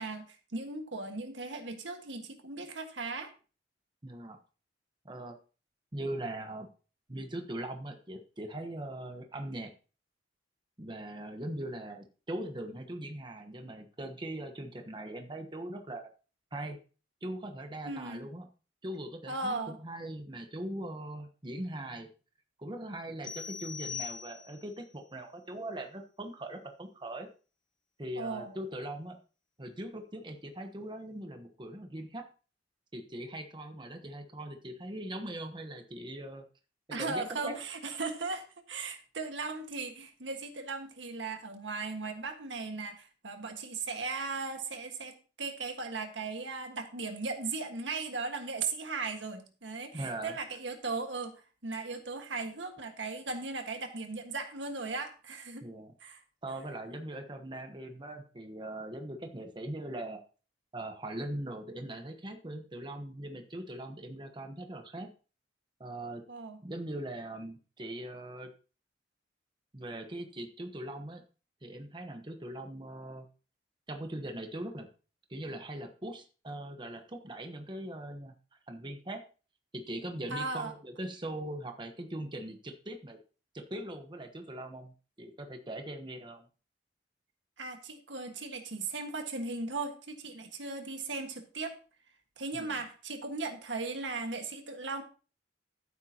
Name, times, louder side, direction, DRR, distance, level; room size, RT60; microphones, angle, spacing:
voice 1, 0.0-3.3 17.8-18.2 19.3-19.8 28.1-28.5 36.9-55.7 56.0-56.2 66.3-66.6 80.3-80.7 87.6-91.7 92.4-95.0, right 3 dB, 75° right, 5 dB, 1.7 m, -37 dB
voice 2, 4.0-4.4 5.0-5.4 5.9-6.7 7.1-9.7 10.8-16.1 16.5-16.8 17.2-18.5 18.8-22.1 22.6-27.3 28.0-29.2 29.6-32.3 32.9-36.4 37.0-37.6 49.9-50.4 55.6-55.9 56.4-60.2 60.7-65.1 65.8-66.2 66.6-68.5 69.7-71.2 71.6-73.3 73.9-74.9 75.3-78.3 78.7-79.2 79.7-83.2 83.5-86.5 92.5-92.8, right 1 dB, 25° right, 5 dB, 1.1 m, -40 dB
sound 1, 23.2-24.8, left 7 dB, 25° left, 1.0 m, -41 dB
14.0 x 8.3 x 2.9 m, 0.35 s
head